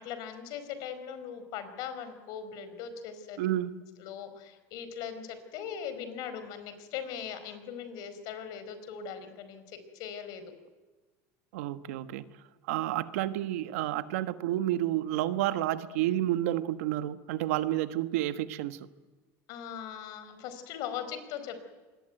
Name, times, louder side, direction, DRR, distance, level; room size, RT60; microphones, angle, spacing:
voice 1, 0.0-3.5 4.0-10.5 19.5-21.7, left 8 dB, 60° left, 10 dB, 4.9 m, -40 dB
voice 2, 3.4-3.7 11.5-12.3 12.7-18.8, right 14 dB, 90° right, 11 dB, 1.4 m, -30 dB
26.5 x 22.0 x 9.2 m, 1.3 s
supercardioid pair, 135°, 7 cm